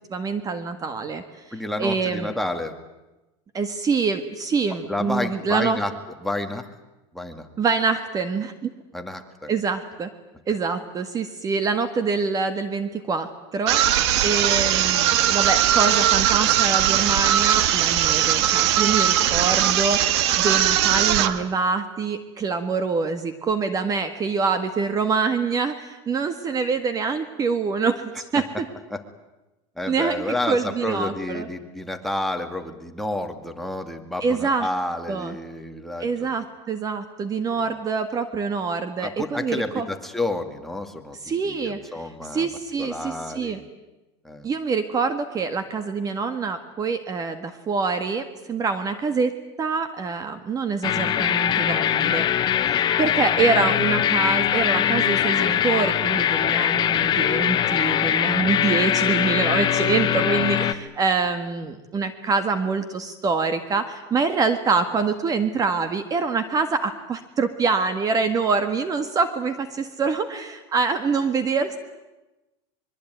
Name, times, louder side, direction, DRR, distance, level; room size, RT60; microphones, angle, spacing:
voice 1, 0.1-1.5 1.8-2.3 3.5-5.8 7.6-8.7 9.5-10.1 10.5-28.4 29.9-31.5 34.2-34.7 35.1-35.3 36.0-39.9 41.2-41.8 42.2-43.6 44.4-52.3 52.6-71.8, right 4 dB, 25° right, 9 dB, 1.7 m, -25 dB
voice 2, 1.5-2.8 4.9-5.9 6.2-6.7 7.1-7.5 8.9-9.5 21.0-21.3 28.9-29.0 29.8-36.3 37.5-37.7 39.0-42.5 42.8-43.6 44.2-44.5 52.9-53.1 60.4-60.5, left 1 dB, ahead, 4 dB, 2.3 m, -30 dB
sound 1, 13.7-21.4, right 11 dB, 75° right, 1.7 m, -20 dB
sound 2, 50.8-60.7, left 10 dB, 30° left, 1.4 m, -22 dB
24.0 x 23.0 x 9.3 m, 1.0 s
supercardioid pair, 140°, 14 cm